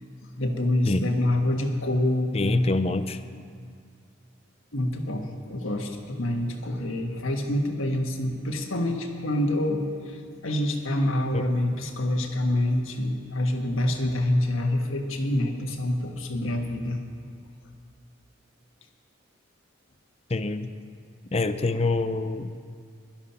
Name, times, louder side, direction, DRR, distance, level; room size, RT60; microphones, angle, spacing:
voice 1, 0.4-2.7 4.7-10.2 10.4-17.0, left 1 dB, 80° left, 3 dB, 1.6 m, -26 dB
voice 2, 2.3-3.2 11.3-11.4 20.3-20.7 21.3-22.6, left 2 dB, 30° left, 11 dB, 0.5 m, -26 dB
16.0 x 12.0 x 5.8 m, 2.2 s
head